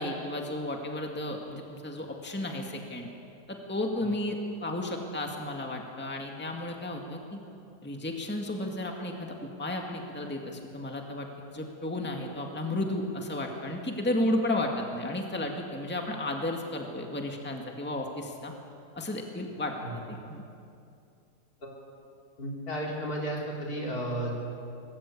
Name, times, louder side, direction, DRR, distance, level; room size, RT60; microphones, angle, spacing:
voice 1, 0.0-3.1 3.5-7.4 7.8-18.5 19.0-19.7 20.1-20.4, left 1 dB, 5° left, 2 dB, 2.0 m, -33 dB
voice 2, 22.4-24.3, right 1 dB, 65° left, -2 dB, 4.6 m, -33 dB
24.0 x 20.0 x 8.6 m, 2.6 s
omnidirectional pair, 1.7 m